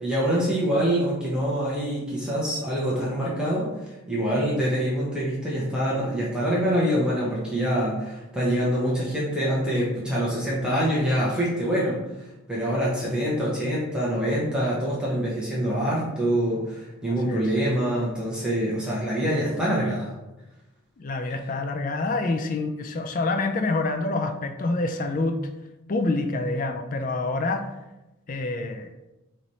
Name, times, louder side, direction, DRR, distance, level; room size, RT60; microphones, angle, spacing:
voice 1, 0.0-3.7 4.1-12.0 12.5-20.1, equal, 5° right, -7 dB, 0.9 m, -25 dB
voice 2, 21.0-25.5 25.9-27.7 28.3-29.1, left 2 dB, 35° left, 6 dB, 0.4 m, -27 dB
3.9 x 3.2 x 4.1 m, 1.0 s
head